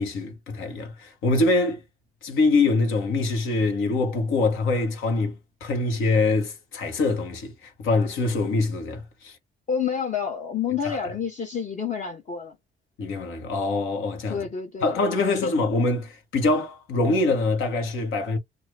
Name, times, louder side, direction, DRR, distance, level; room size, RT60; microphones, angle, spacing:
voice 1, 0.0-1.8 2.2-9.4 10.8-11.0 13.0-14.5 14.8-18.4, left 3 dB, 85° left, 1.3 m, -24 dB
voice 2, 9.7-12.6 14.3-15.5, left 6 dB, 40° left, 0.8 m, -29 dB
2.6 x 2.5 x 3.2 m
cardioid pair, 90°, 20 cm